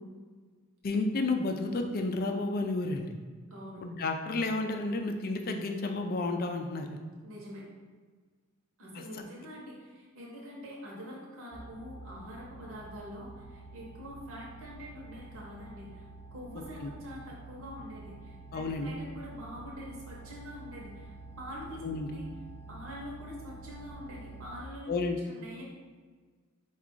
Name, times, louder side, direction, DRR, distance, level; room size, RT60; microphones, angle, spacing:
voice 1, 0.8-3.1 3.8-7.0 16.8-16.9 18.5-18.9 21.8-22.1 24.9-25.2, left 2 dB, 45° left, 4 dB, 0.4 m, -31 dB
voice 2, 3.5-3.8 7.2-7.6 8.8-22.3 22.7-24.9 25.2-25.6, equal, 70° right, -4 dB, 1.0 m, -45 dB
sound 1, 11.5-24.6, right 3 dB, 30° right, 0.5 m, -48 dB
4.6 x 2.4 x 3.7 m, 1.5 s
head